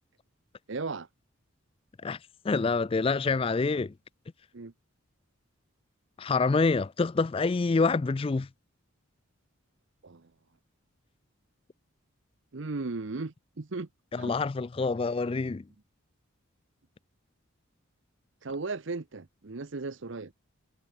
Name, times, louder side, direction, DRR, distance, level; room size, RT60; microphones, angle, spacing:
voice 1, 0.7-1.1 4.5-4.7 10.0-10.3 12.5-13.9 14.2-14.3 18.4-20.3, right 3 dB, 60° right, 0.8 m, -36 dB
voice 2, 2.4-3.9 6.2-8.5 14.1-15.6, left 4 dB, 25° left, 0.3 m, -26 dB
head